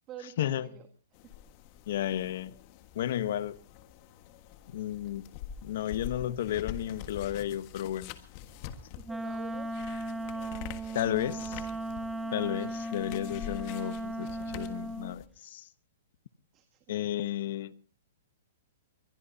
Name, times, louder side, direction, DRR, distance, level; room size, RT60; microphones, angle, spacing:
voice 1, 0.1-0.9 1.2-1.3 8.9-9.7 16.5-16.9, right 11 dB, 25° right, 1.7 m, -47 dB
sound 1, 1.1-15.3, left 10 dB, 35° left, 1.6 m, -46 dB
voice 2, 1.9-2.5 2.9-3.6 4.7-5.2 5.6-8.1 10.9-11.6 12.3-15.7 16.9-17.7, left 11 dB, 55° left, 1.1 m, -33 dB
Wind instrument woodwind instrument, 9.1-15.2, right 1 dB, 5° right, 0.7 m, -36 dB
22.5 x 21.5 x 2.8 m
hypercardioid pair, 155°, 0 cm